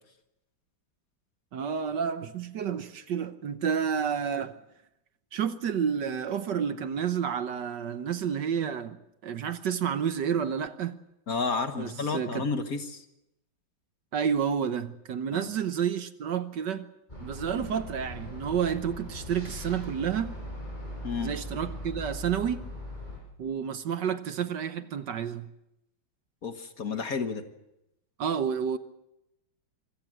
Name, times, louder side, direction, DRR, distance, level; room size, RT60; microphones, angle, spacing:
voice 1, 1.5-4.6 5.3-11.0 11.8-12.5 14.1-16.9 17.2-20.3 21.2-22.7 23.4-25.5 28.2-28.8, right 7 dB, 65° right, 1.5 m, -30 dB
voice 2, 11.3-13.0 15.3-15.5 21.0-21.3 26.4-27.4, left 4 dB, 50° left, 1.7 m, -31 dB
sound 1, 17.1-23.2, left 1 dB, 20° left, 6.7 m, -40 dB
25.5 x 16.5 x 7.7 m
omnidirectional pair, 2.2 m